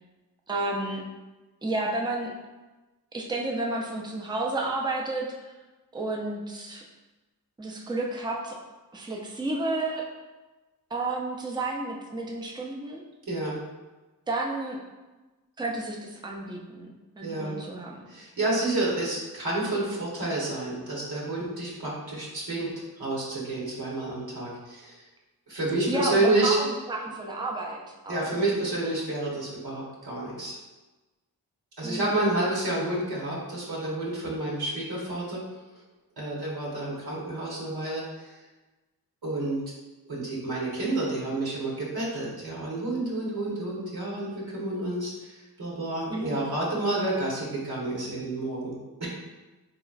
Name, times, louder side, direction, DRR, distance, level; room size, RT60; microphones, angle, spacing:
voice 1, 0.5-1.0 1.6-2.3 3.1-5.5 5.9-6.8 7.6-8.6 8.9-10.0 10.9-13.0 14.3-14.8 15.6-18.1 25.9-28.3 31.8-32.3 46.1-46.4, right 2 dB, 10° right, -1 dB, 0.6 m, -31 dB
voice 2, 13.3-13.6 17.2-17.6 18.1-22.7 23.0-25.0 25.5-26.6 28.1-30.6 31.8-35.4 36.2-38.3 39.2-39.6 40.1-48.7 49.0-49.1, right 2 dB, 70° right, -5 dB, 1.3 m, -29 dB
3.7 x 3.0 x 2.5 m, 1.1 s
cardioid pair, 60°, 39 cm